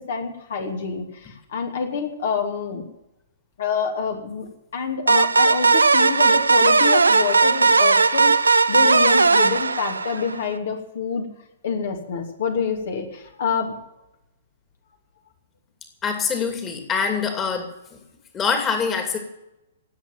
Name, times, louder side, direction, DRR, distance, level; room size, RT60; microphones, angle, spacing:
voice 1, 0.1-2.8 3.6-8.3 8.7-11.3 11.6-13.8, left 6 dB, 55° left, 3 dB, 2.6 m, -27 dB
sound 1, 5.1-10.5, right 4 dB, 75° right, 0.7 m, -17 dB
voice 2, 16.0-18.0 18.3-19.2, left 6 dB, 20° left, 5 dB, 2.6 m, -24 dB
18.5 x 8.1 x 9.2 m, 0.89 s
figure-of-eight pair, 115°, 0 cm